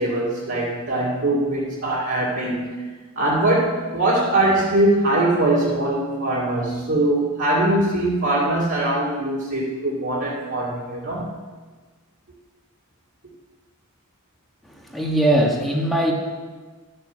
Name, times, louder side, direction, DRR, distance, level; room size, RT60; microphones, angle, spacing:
voice 1, 0.0-2.8 3.2-11.4, right 1 dB, 60° right, -7 dB, 2.4 m, -22 dB
voice 2, 14.6-16.1, right 1 dB, ahead, -2 dB, 1.6 m, -21 dB
12.5 x 6.8 x 7.3 m, 1.4 s
head